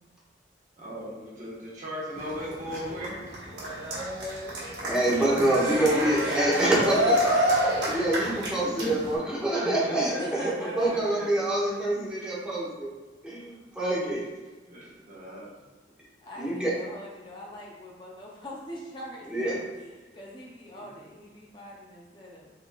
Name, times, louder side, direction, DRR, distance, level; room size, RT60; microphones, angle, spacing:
voice 1, 0.8-3.1 8.4-9.0 9.5-11.2 11.6-11.7 14.7-15.4, equal, 45° right, -7 dB, 1.3 m, -37 dB
Cheering, 2.2-9.2, equal, 80° right, 1.3 m, -28 dB
voice 2, 4.8-7.3 7.8-12.9 13.2-14.2 16.4-16.7 19.3-19.6, right 1 dB, 5° right, -7 dB, 1.1 m, -26 dB
voice 3, 10.0-11.5 16.2-22.5, equal, 25° left, -3 dB, 0.6 m, -42 dB
4.1 x 3.9 x 2.3 m, 1.3 s
head